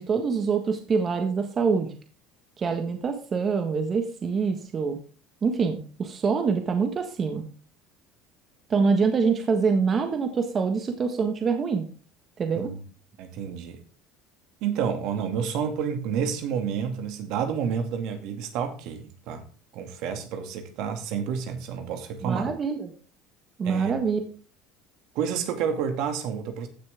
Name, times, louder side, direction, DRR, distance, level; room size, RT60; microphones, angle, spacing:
voice 1, 0.0-1.9 2.6-5.0 5.4-7.4 8.7-11.8 12.4-12.7 22.2-22.9 23.6-24.2, right 5 dB, 35° right, 1.6 m, -25 dB
voice 2, 13.2-13.8 14.6-19.4 19.7-22.5 23.6-24.0 25.1-26.7, right 7 dB, 70° right, 2.4 m, -29 dB
15.0 x 6.5 x 3.6 m
supercardioid pair, 100°, 0 cm